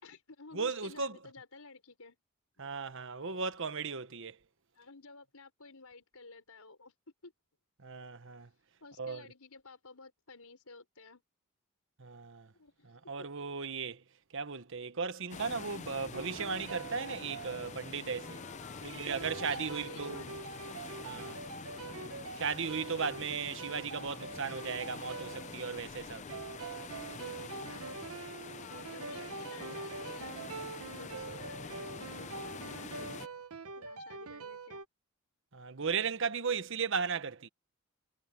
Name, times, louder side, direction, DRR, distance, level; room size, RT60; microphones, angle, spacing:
voice 1, 0.0-2.2 4.7-6.9 7.2-7.3 8.8-11.2 12.5-13.3 18.2-19.2 19.5-20.3 21.8-22.2 27.2-27.9 28.4-30.4 31.0-33.2 33.8-34.8, left 3 dB, 85° left, 4.6 m, -53 dB
voice 2, 0.5-1.2 2.6-4.4 7.8-8.5 9.0-9.3 12.0-12.5 12.8-14.0 14.3-18.4 18.8-20.3 21.0-21.4 22.4-26.2 35.5-37.5, right 5 dB, 60° right, 1.1 m, -36 dB
sound 1, 15.3-33.3, left 5 dB, 30° left, 0.5 m, -46 dB
sound 2, 16.1-18.3 19.1-34.8, right 4 dB, 80° right, 0.9 m, -45 dB
head